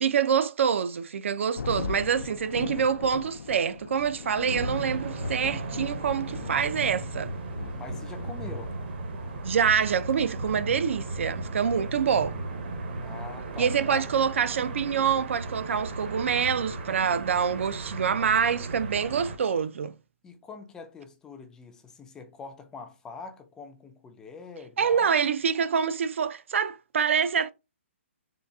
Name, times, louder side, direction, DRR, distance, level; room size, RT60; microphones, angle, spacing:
voice 1, 0.0-7.3 9.4-12.4 13.6-19.9 24.8-27.5, right 7 dB, 65° right, 0.4 m, -26 dB
Thunder, 1.5-15.5, left 5 dB, 85° left, 0.3 m, -40 dB
sound 1, 4.5-19.4, right 2 dB, 50° right, 0.7 m, -36 dB
voice 2, 7.7-8.7 13.0-14.1 20.2-25.1, left 4 dB, 10° left, 0.3 m, -44 dB
3.9 x 2.3 x 2.2 m
hypercardioid pair, 155°, 7 cm